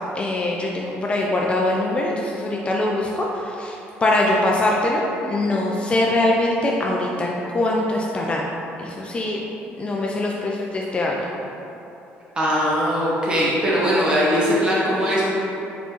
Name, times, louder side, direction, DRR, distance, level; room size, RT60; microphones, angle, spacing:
voice 1, 0.1-8.5 8.8-9.4 9.8-11.3, left 1 dB, 25° left, -2 dB, 0.3 m, -23 dB
voice 2, 12.4-15.3, equal, 20° right, -7 dB, 1.1 m, -20 dB
4.1 x 4.0 x 2.9 m, 3.0 s
cardioid pair, 120°, 4 cm